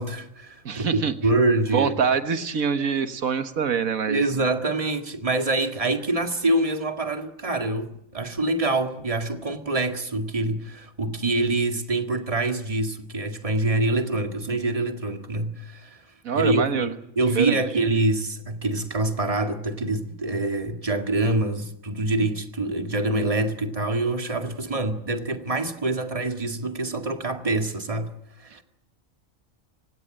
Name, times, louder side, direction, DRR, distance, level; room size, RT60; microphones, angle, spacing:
voice 1, 0.0-2.0 4.1-16.0 16.3-28.1 28.4-28.6, right 2 dB, 25° right, 2.1 m, -25 dB
voice 2, 0.7-1.1 1.7-4.2 16.2-16.9 17.4-17.6, right 6 dB, 85° right, 1.8 m, -25 dB
29.5 x 17.0 x 8.9 m
omnidirectional pair, 1.4 m